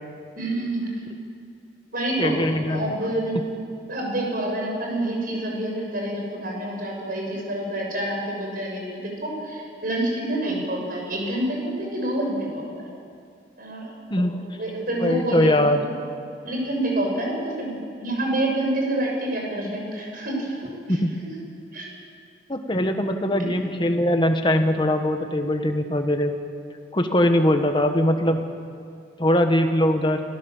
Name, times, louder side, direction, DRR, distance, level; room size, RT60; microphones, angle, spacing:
voice 1, 0.4-0.8 1.9-2.4 2.7-3.4 3.9-12.9 13.6-13.9 14.4-15.6 16.0-16.1 16.4-21.3 21.7-21.9, right 1 dB, 50° right, 0 dB, 6.5 m, -27 dB
voice 2, 2.2-2.9 14.1-14.4 15.0-15.8 20.9-21.1 22.5-26.3 26.9-28.4 29.2-30.2, left 1 dB, 25° left, 6 dB, 1.5 m, -21 dB
27.5 x 17.5 x 7.4 m, 2.3 s
head